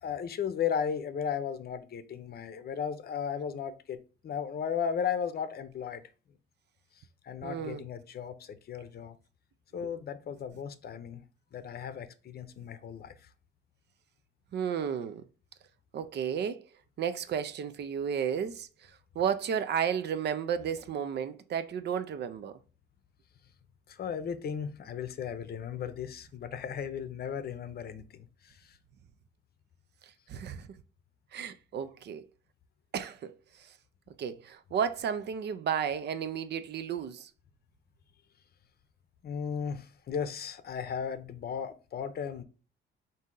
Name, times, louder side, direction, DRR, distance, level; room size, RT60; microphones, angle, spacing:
voice 1, 0.0-6.0 7.2-9.2 9.7-11.2 11.5-13.3 23.9-28.8 39.2-42.4, left 7 dB, 50° left, 0.6 m, -35 dB
voice 2, 7.4-7.8 9.8-9.9 14.5-15.2 15.9-16.7 17.0-22.6 30.0-30.7 31.3-32.2 32.9-33.7 34.2-37.3, right 8 dB, 60° right, 0.5 m, -33 dB
4.1 x 2.7 x 3.7 m
cardioid pair, 90°, 20 cm